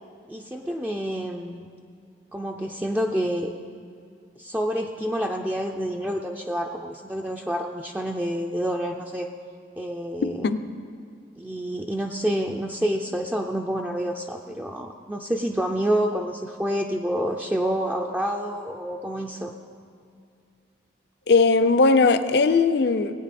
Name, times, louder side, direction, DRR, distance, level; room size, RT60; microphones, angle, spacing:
voice 1, 0.3-1.7 2.3-3.5 4.4-9.3 9.8-10.5 11.4-19.5, equal, 10° right, 2 dB, 0.4 m, -28 dB
voice 2, 10.2-10.6 21.3-23.2, left 4 dB, 60° left, 12 dB, 0.5 m, -19 dB
18.0 x 8.9 x 4.2 m, 2.3 s
head